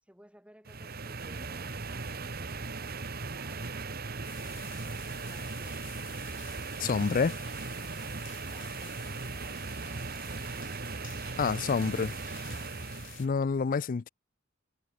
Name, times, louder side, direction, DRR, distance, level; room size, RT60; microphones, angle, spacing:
voice 1, 0.0-5.9, equal, 5° right, 6.1 m, -60 dB
sound 1, 0.7-13.3, right 4 dB, 50° right, 1.7 m, -38 dB
sound 2, 4.2-13.3, left 14 dB, 70° left, 5.7 m, -51 dB
voice 2, 6.8-7.4 11.4-12.1 13.2-14.1, left 5 dB, 45° left, 0.4 m, -28 dB
head